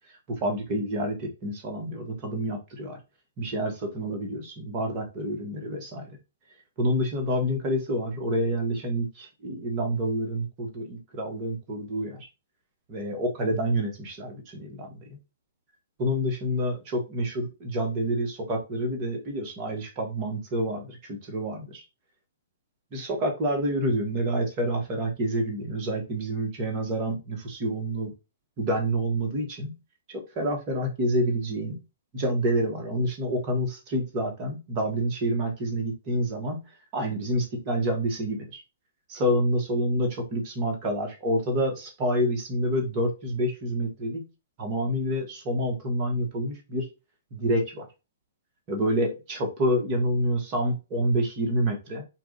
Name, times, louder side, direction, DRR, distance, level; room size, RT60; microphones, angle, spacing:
voice 1, 0.3-3.0 3.4-6.1 6.8-12.3 12.9-15.2 16.0-21.8 22.9-28.1 28.6-29.7 30.1-31.8 32.1-36.6 36.9-38.6 39.1-44.2 44.6-46.9 47.3-47.9 48.7-52.0, equal, 35° right, 2 dB, 1.3 m, -28 dB
4.6 x 2.5 x 3.7 m, 0.28 s
hypercardioid pair, 135°, 0 cm